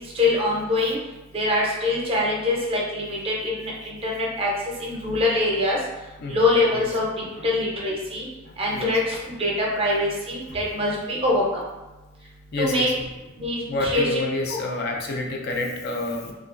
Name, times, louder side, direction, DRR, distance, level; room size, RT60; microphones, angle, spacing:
voice 1, 0.1-1.0 1.3-4.5 4.8-5.8 6.3-7.1 7.4-8.2 8.6-11.6 12.6-12.9 13.4-14.2 14.5-14.6, left 2 dB, 30° right, -3 dB, 0.6 m, -24 dB
voice 2, 8.5-8.9 10.5-10.6 12.5-12.9 13.7-16.3, left 2 dB, 50° left, 1 dB, 0.4 m, -29 dB
2.9 x 2.3 x 2.4 m, 1.1 s
head